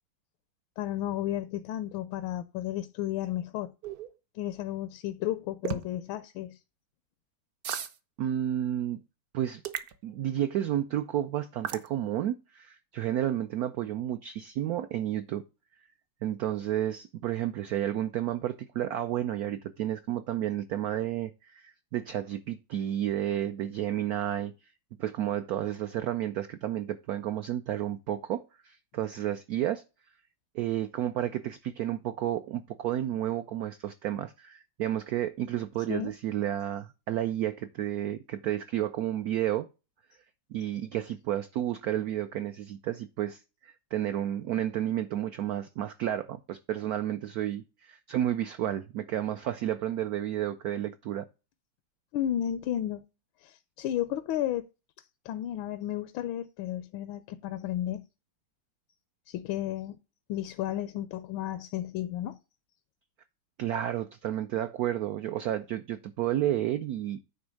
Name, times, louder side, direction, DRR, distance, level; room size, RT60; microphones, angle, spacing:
voice 1, 0.8-3.7 4.3-6.6 35.9-36.1 52.1-53.0 53.4-54.6 55.2-58.1 59.3-60.0 60.3-62.4, left 12 dB, 85° left, 1.4 m, -33 dB
sound 1, 3.8-4.1 5.6-5.9 7.6-8.0 9.7-10.0 11.6-11.9, right 8 dB, 60° right, 1.1 m, -34 dB
voice 2, 8.2-9.0 9.3-9.6 10.0-15.4 16.2-24.5 25.0-29.8 30.5-39.7 40.5-51.3 63.6-67.2, right 12 dB, 80° right, 0.8 m, -31 dB
9.7 x 3.4 x 6.3 m
omnidirectional pair, 2.2 m